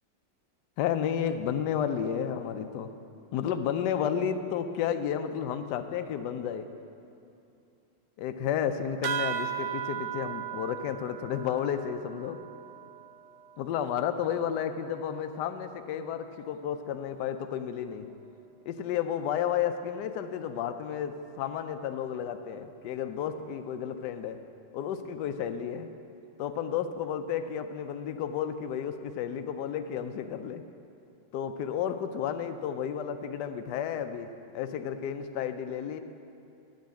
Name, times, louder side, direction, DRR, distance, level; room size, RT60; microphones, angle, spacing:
voice 1, 0.8-2.9 3.3-6.7 8.2-12.4 13.6-18.1 18.7-24.4 24.7-25.9 26.4-30.6 31.3-34.3 34.5-36.0, left 8 dB, 80° left, 9 dB, 0.9 m, -32 dB
sound 1, 9.0-14.0, right 10 dB, 85° right, 1.5 m, -37 dB
10.5 x 6.4 x 8.3 m, 2.7 s
omnidirectional pair, 2.4 m